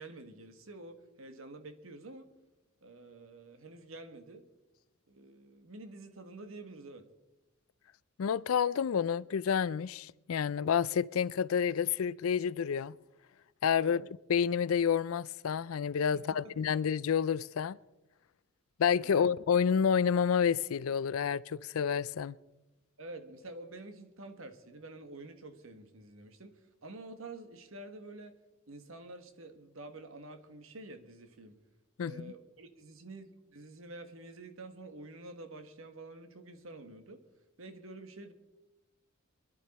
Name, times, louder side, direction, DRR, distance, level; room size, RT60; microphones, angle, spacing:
voice 1, 0.0-2.3 2.8-4.4 5.1-7.1 13.8-14.0 16.3-16.5 19.0-19.3 23.0-28.4 28.7-31.5 32.0-37.2 37.6-38.3, right 2 dB, 65° right, 1.5 m, -48 dB
voice 2, 8.2-12.9 13.6-17.8 18.8-22.4 32.0-32.3, left 7 dB, 70° left, 0.4 m, -29 dB
23.5 x 11.5 x 4.2 m
head